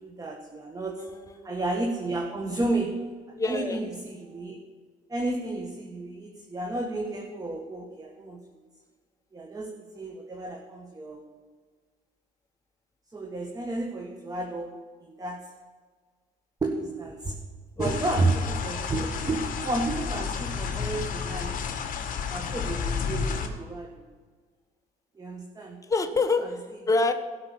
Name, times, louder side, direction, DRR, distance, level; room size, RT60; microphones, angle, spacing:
voice 1, 0.0-1.0 1.4-2.9 3.3-4.5 5.1-8.4 9.3-11.3 13.1-14.7 15.0-15.5 16.6-17.3 17.8-21.5 22.3-24.1 25.2-25.8 26.4-26.5, right 2 dB, 20° right, 2 dB, 1.4 m, -31 dB
voice 2, 1.1-1.5 3.3-3.8 17.8-17.9 25.9-26.5 26.9-27.1, left 3 dB, 20° left, 7 dB, 1.0 m, -26 dB
sound 1, 17.8-23.5, left 6 dB, 55° left, 1.6 m, -31 dB
16.5 x 5.9 x 7.0 m, 1.5 s
cardioid pair, 110°, 17 cm